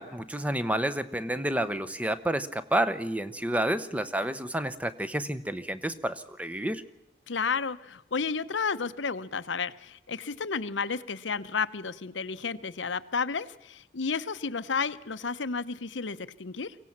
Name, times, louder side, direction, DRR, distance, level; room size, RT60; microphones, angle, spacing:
voice 1, 0.0-6.8, right 1 dB, 10° right, 13 dB, 0.8 m, -30 dB
voice 2, 7.3-16.8, left 5 dB, 80° left, 13 dB, 0.9 m, -32 dB
23.5 x 17.0 x 7.4 m, 0.90 s
head